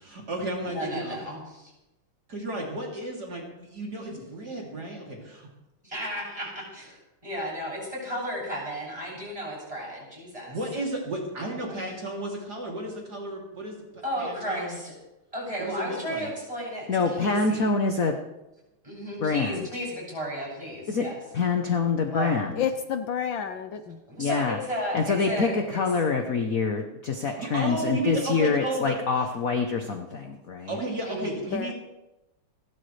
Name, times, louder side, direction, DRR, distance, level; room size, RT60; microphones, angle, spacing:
voice 1, 0.0-1.2 2.3-5.5 10.5-14.8 15.6-16.3 27.2-29.3 30.7-31.7, right 1 dB, 45° right, -2 dB, 3.6 m, -33 dB
voice 2, 0.6-1.4 4.0-4.2 5.9-6.9 7.2-10.6 11.7-11.8 14.0-14.9 15.3-17.7 18.8-21.1 22.1-22.4 24.1-25.8 27.8-28.0 31.1-31.5, equal, 15° right, -4 dB, 7.9 m, -34 dB
voice 3, 16.9-18.2 19.2-19.7 20.9-21.1 21.3-22.6 24.2-24.6 24.9-30.8, left 4 dB, 50° left, 4 dB, 1.2 m, -26 dB
voice 4, 22.6-24.0 31.5-31.7, left 8 dB, 70° left, 8 dB, 1.5 m, -30 dB
29.5 x 12.0 x 3.3 m, 0.99 s
omnidirectional pair, 2.3 m